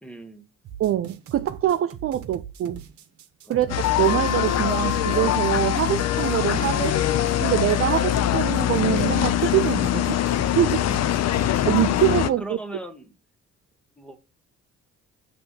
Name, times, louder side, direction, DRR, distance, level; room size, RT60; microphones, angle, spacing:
voice 1, 0.0-0.4 3.5-3.8 11.4-11.5 12.4-13.1 14.0-14.2, right 2 dB, 5° left, 1.2 m, -39 dB
sound 1, 0.6-12.1, right 8 dB, 65° right, 1.0 m, -41 dB
voice 2, 0.8-2.8 3.5-7.0 7.4-10.2 10.5-10.8 11.7-12.4, right 12 dB, 50° right, 0.4 m, -24 dB
sound 2, 3.7-12.3, left 11 dB, 60° left, 0.5 m, -23 dB
6.0 x 3.3 x 5.5 m
cardioid pair, 90°, 30 cm